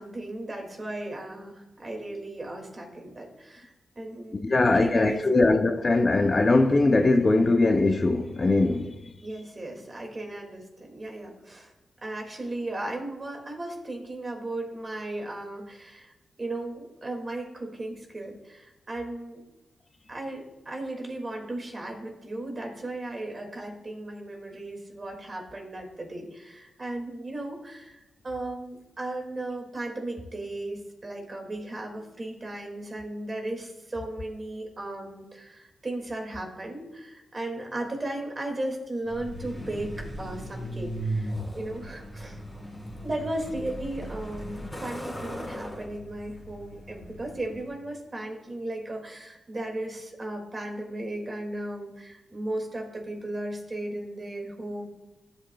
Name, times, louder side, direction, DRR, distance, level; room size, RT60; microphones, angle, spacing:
voice 1, 0.0-5.5 9.2-11.7 12.0-16.1 16.4-19.4 20.1-42.4 43.0-54.9, right 1 dB, 30° right, 2.1 m, -36 dB
voice 2, 4.4-8.9, left 2 dB, 30° left, 0.6 m, -21 dB
Truck, 39.1-47.8, right 1 dB, 10° left, 3.0 m, -37 dB
14.0 x 7.9 x 2.3 m
cardioid pair, 95°, 0 cm